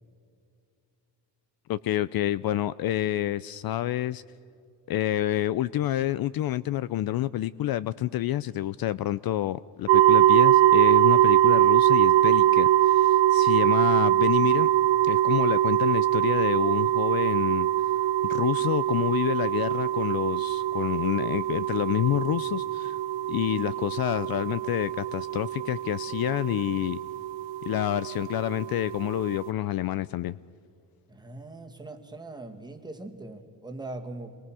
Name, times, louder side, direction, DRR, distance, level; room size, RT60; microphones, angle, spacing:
voice 1, 1.7-4.2 4.9-14.7 15.0-17.7 18.2-23.0 23.3-27.0 27.6-30.4, left 13 dB, 55° left, 18 dB, 0.5 m, -28 dB
sound 1, 9.9-29.5, right 13 dB, 85° right, 0.5 m, -23 dB
voice 2, 31.1-34.4, right 2 dB, 10° right, 3 dB, 2.0 m, -41 dB
27.5 x 22.5 x 6.2 m, 2.5 s
cardioid pair, 125°, 43 cm